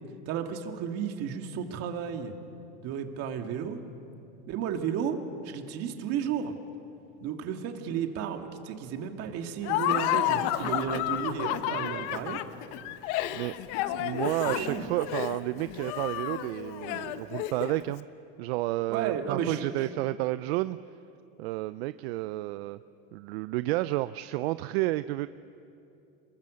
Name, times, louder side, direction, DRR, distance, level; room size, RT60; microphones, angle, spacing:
voice 1, 0.3-2.3 2.8-3.8 4.5-6.6 7.2-12.4 14.5-14.9 18.9-19.9, right 7 dB, 55° right, 5 dB, 2.2 m, -33 dB
Laughter, 9.6-17.9, left 13 dB, 65° left, 1.1 m, -31 dB
voice 2, 14.0-18.1 18.4-20.8 21.4-22.8 23.1-25.3, right 18 dB, 80° right, 14 dB, 0.6 m, -31 dB
27.0 x 22.5 x 6.5 m, 2.7 s
supercardioid pair, 130°, 31 cm